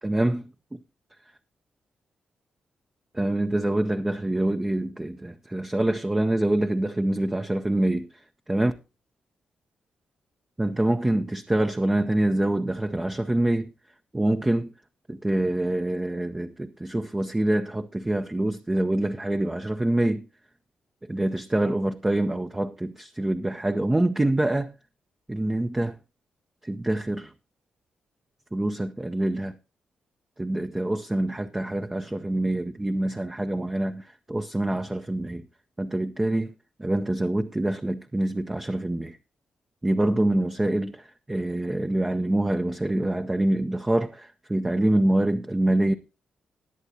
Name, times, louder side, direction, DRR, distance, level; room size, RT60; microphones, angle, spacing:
voice 1, 0.0-0.4 0.7-0.8 3.1-8.1 8.5-8.7 10.6-13.7 14.1-14.7 15.1-20.3 21.1-24.7 25.3-26.0 26.6-27.3 28.5-29.6 30.4-35.5 35.8-36.5 36.8-39.2 39.8-45.9, right 1 dB, 15° right, 0.6 m, -25 dB
19.5 x 7.9 x 2.8 m
cardioid pair, 90°, 3 cm